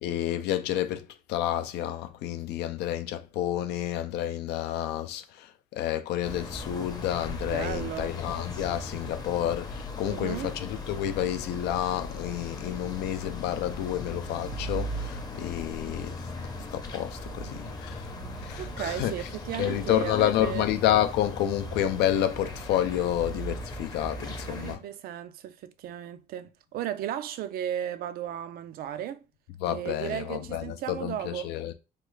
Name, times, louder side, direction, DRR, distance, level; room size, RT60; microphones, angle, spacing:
voice 1, 0.0-16.2 16.7-18.0 18.4-19.2 19.6-24.8 29.6-31.7, left 11 dB, 85° left, 0.5 m, -29 dB
sound 1, 6.2-24.8, left 1 dB, 20° left, 0.6 m, -38 dB
voice 2, 7.4-8.2 10.0-10.5 18.6-20.7 24.5-29.3 29.6-31.5, right 11 dB, 60° right, 0.4 m, -35 dB
3.2 x 2.3 x 3.1 m
cardioid pair, 110°, 17 cm